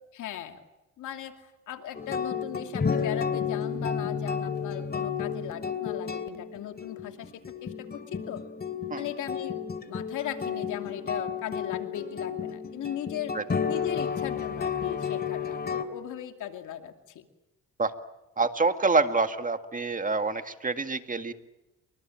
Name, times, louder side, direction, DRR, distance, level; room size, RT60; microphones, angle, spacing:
voice 1, 0.1-0.6 1.0-8.4 9.0-9.6 9.9-13.4 13.7-17.2, left 11 dB, 80° left, 6 dB, 2.7 m, -38 dB
sound 1, 1.9-15.8, left 6 dB, 30° left, 2.7 m, -32 dB
voice 2, 18.4-21.3, right 3 dB, 25° right, 8 dB, 2.0 m, -26 dB
29.5 x 24.0 x 7.5 m, 0.99 s
cardioid pair, 90°, 30 cm